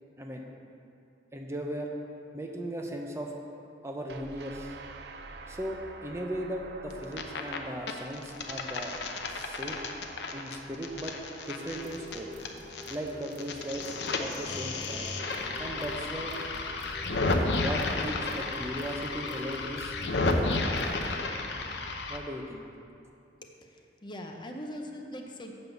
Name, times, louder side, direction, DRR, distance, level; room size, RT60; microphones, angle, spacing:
voice 1, 1.3-1.9 2.3-3.4 3.8-4.8 5.5-8.9 9.3-9.8 10.3-11.2 11.5-12.3 12.9-13.9 14.2-15.1 15.6-16.3 17.6-20.0 20.3-20.6 22.1-22.6, equal, 15° right, 1 dB, 0.6 m, -37 dB
sound 1, 4.1-15.0, right 3 dB, 60° right, 0.5 m, -49 dB
sound 2, 6.9-7.6 7.9-13.0 13.2-22.2, left 3 dB, 70° left, 0.7 m, -32 dB
sound 3, 11.4-21.2, left 2 dB, 40° right, 1.2 m, -49 dB
voice 2, 23.4-25.5, equal, 25° left, 2 dB, 0.6 m, -41 dB
7.9 x 5.4 x 7.0 m, 2.6 s
head